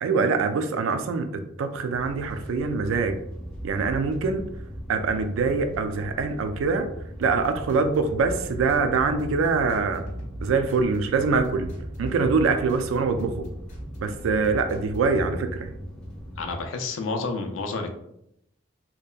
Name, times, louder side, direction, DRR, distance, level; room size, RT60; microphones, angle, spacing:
voice 1, 0.0-3.2 3.6-4.5 4.9-6.9 7.2-10.0 10.4-11.7 12.0-13.5 14.0-15.7, right 4 dB, 80° right, 8 dB, 0.3 m, -24 dB
sound 1, 1.9-16.7, equal, 5° left, 0.4 m, -38 dB
sound 2, 7.2-15.0, right 1 dB, 40° left, 0.7 m, -42 dB
voice 2, 16.4-17.9, left 3 dB, 75° left, 4 dB, 0.4 m, -30 dB
2.7 x 2.1 x 2.3 m, 0.78 s
head